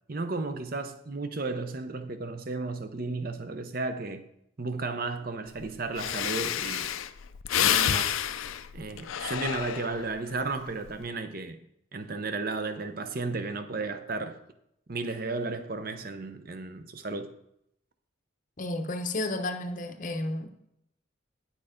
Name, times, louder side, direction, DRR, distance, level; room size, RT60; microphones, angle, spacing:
voice 1, 0.1-4.2 4.6-6.9 7.6-8.2 8.7-11.6 11.9-14.4 14.9-17.3, right 3 dB, 45° right, 0.7 m, -34 dB
Breathing, 5.6-5.7 6.0-10.2 10.7-11.0, left 10 dB, 85° left, 0.5 m, -29 dB
voice 2, 18.6-20.5, left 2 dB, 40° left, 0.7 m, -32 dB
9.5 x 6.5 x 5.1 m
head